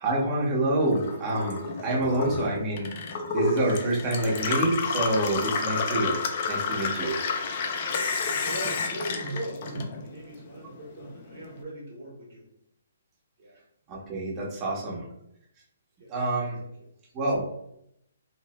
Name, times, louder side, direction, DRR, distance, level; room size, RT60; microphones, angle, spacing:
voice 1, 0.0-2.9 3.3-6.2 6.5-7.2 13.9-15.0 16.1-16.6 17.1-17.5, right 1 dB, 25° right, -5 dB, 1.0 m, -27 dB
Gurgling / Water tap faucet / Sink (filling or washing), 0.8-10.3 10.6-11.5, left 4 dB, 45° left, 0.4 m, -30 dB
voice 2, 8.2-12.5 13.4-13.6 16.0-16.1 16.6-16.7, right 1 dB, 60° right, -7 dB, 1.0 m, -39 dB
3.0 x 2.0 x 3.0 m, 0.76 s
hypercardioid pair, 140°, 0 cm